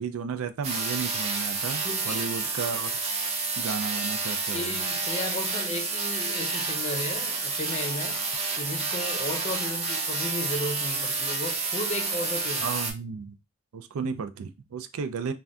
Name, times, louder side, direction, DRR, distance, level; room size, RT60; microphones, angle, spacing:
voice 1, 0.0-2.9 3.6-4.8 12.6-13.4 13.7-15.3, right 5 dB, 85° right, 0.4 m, -33 dB
sound 1, 0.6-12.9, right 4 dB, 30° right, 0.7 m, -29 dB
voice 2, 1.8-2.4 4.5-8.2 8.6-12.8, left 1 dB, 30° left, 0.6 m, -34 dB
2.6 x 2.2 x 3.4 m
head